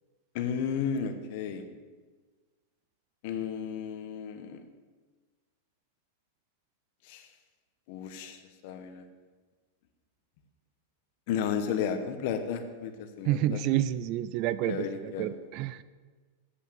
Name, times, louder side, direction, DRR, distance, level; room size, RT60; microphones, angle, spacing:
voice 1, 0.3-1.6 3.2-4.6 7.1-7.3 7.9-8.4 8.6-9.0 11.3-13.6 14.6-15.3, left 7 dB, 50° left, 8 dB, 1.0 m, -33 dB
voice 2, 13.3-15.8, right 12 dB, 40° right, 16 dB, 0.3 m, -29 dB
8.2 x 5.5 x 7.1 m, 1.4 s
supercardioid pair, 150°, 0 cm